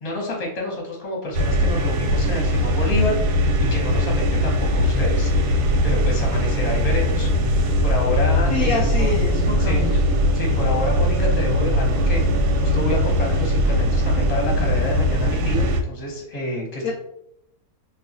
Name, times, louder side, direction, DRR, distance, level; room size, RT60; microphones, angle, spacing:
voice 1, 0.0-3.3 3.6-5.5 5.8-7.3 7.8-9.1 9.6-9.8 10.3-16.9, left 1 dB, 30° left, -2 dB, 0.8 m, -28 dB
sound 1, 1.3-15.8, equal, 85° right, 1.2 m, -20 dB
voice 2, 8.5-10.0 16.8-16.9, left 4 dB, 70° left, 0 dB, 0.9 m, -26 dB
2.4 x 2.4 x 3.9 m, 0.76 s
omnidirectional pair, 1.7 m